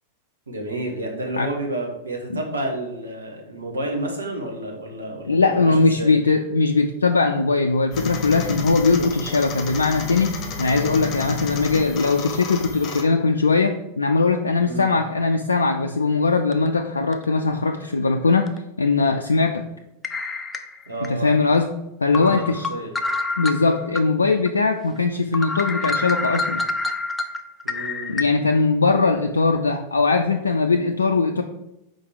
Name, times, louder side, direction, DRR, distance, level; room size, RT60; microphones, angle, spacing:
voice 1, 0.5-6.2 14.6-15.0 20.9-21.3 22.1-22.9 27.6-28.2, right 1 dB, 75° right, 1 dB, 1.3 m, -30 dB
voice 2, 5.3-18.5 18.8-19.6 21.1-21.7 22.0-22.7 23.4-26.6 28.1-31.4, left 4 dB, 75° left, 4 dB, 0.3 m, -20 dB
sound 1, 7.9-13.0, left 4 dB, 30° left, 1.0 m, -32 dB
sound 2, 16.5-16.7 17.1-17.2 18.5-18.6 20.0-21.1 21.5-21.6 22.1-24.0 24.4-24.5 25.0-25.1 25.3-28.2, left 3 dB, 10° left, 0.5 m, -27 dB
5.0 x 4.0 x 4.9 m, 0.88 s
figure-of-eight pair, 90°, 0 cm